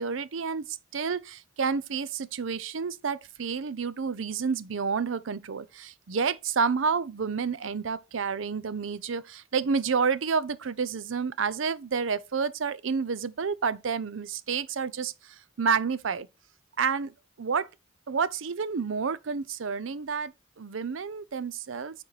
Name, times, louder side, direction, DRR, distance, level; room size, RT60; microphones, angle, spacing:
voice 1, 0.0-16.3 16.8-17.1 17.4-17.7 18.1-22.0, right 5 dB, 85° right, 0.6 m, -29 dB
8.8 x 4.4 x 4.1 m
head